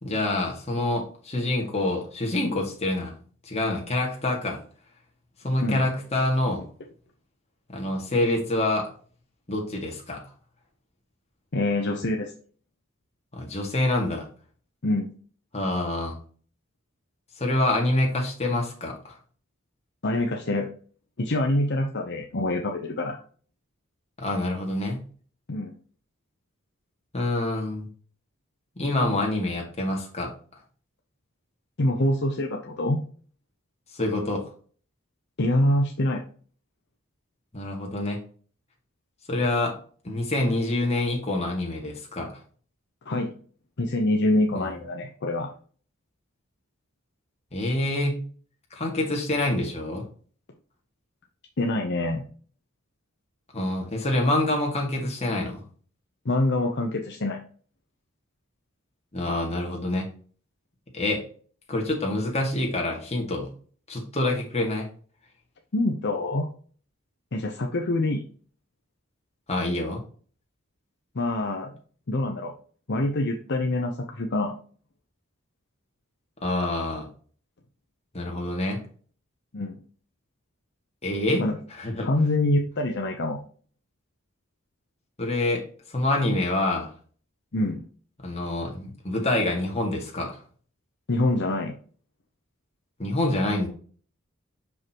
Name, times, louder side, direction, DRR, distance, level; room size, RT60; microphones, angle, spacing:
voice 1, 0.0-3.1 3.5-4.6 5.4-6.6 7.7-8.9 9.5-10.2 13.3-14.3 15.5-16.2 17.4-19.2 24.2-25.0 27.1-27.9 28.8-30.3 33.9-34.4 37.5-38.2 39.3-39.8 40.0-42.3 44.5-44.7 47.5-48.2 48.7-50.0 53.5-55.6 59.1-60.1 60.9-61.2 61.7-63.5 63.9-64.9 69.5-70.0 76.4-77.1 78.1-78.8 81.0-81.4 81.8-82.1 85.2-85.6 85.9-86.9 88.2-90.4 93.0-93.7, left 1 dB, 30° left, 0 dB, 2.0 m, -26 dB
voice 2, 11.5-12.3 14.8-15.1 20.0-20.7 21.2-23.2 25.5-25.7 31.8-33.0 35.4-36.2 43.1-43.4 43.8-45.5 51.6-52.3 56.2-57.4 65.7-66.5 67.3-68.3 71.1-71.7 72.1-72.5 72.9-74.5 79.5-79.8 81.4-81.6 82.0-83.4 87.5-87.8 91.1-91.7, left 1 dB, 55° left, 2 dB, 0.8 m, -25 dB
6.1 x 5.4 x 2.9 m, 0.42 s
head